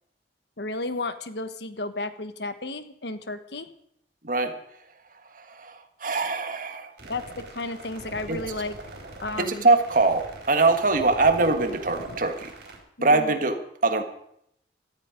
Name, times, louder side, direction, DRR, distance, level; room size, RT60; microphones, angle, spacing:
voice 1, 0.6-3.7 7.1-8.8 9.2-9.7 13.0-13.4, left 2 dB, 70° left, 11 dB, 1.2 m, -33 dB
voice 2, 4.2-4.6 5.3-6.9 8.3-8.4 9.4-12.5 13.0-14.0, right 3 dB, 50° right, 7 dB, 1.6 m, -23 dB
sound 1, 7.0-12.8, right 2 dB, 70° right, 4.5 m, -41 dB
18.0 x 13.5 x 5.2 m, 0.73 s
head